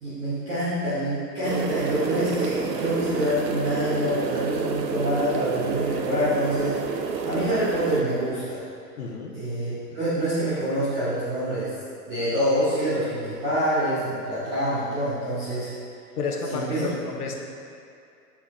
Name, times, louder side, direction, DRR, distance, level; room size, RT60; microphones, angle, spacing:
voice 1, 0.0-6.7 7.2-8.6 9.3-11.7 12.1-15.7 16.5-16.8, equal, 10° right, -12 dB, 0.4 m, -26 dB
sound 1, 1.4-8.0, right 5 dB, 85° right, 0.6 m, -29 dB
voice 2, 9.0-9.4 16.2-17.3, left 4 dB, 65° left, 1 dB, 1.0 m, -30 dB
7.2 x 5.8 x 2.4 m, 2.5 s
figure-of-eight pair, 115°, 49 cm